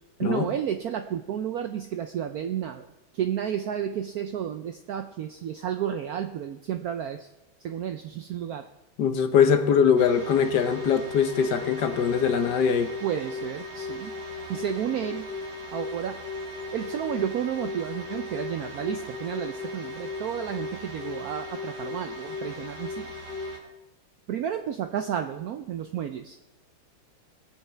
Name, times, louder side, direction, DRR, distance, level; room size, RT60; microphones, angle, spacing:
voice 1, 0.2-2.9 3.1-7.3 7.6-8.7 13.0-14.1 14.5-15.3 15.7-16.2 16.7-23.1 24.3-26.4, right 9 dB, 75° right, 0.8 m, -31 dB
voice 2, 9.0-12.9, left 7 dB, 65° left, 1.3 m, -22 dB
sound 1, 10.0-23.6, left 2 dB, 60° right, 2.5 m, -36 dB
20.5 x 7.7 x 3.3 m
omnidirectional pair, 2.1 m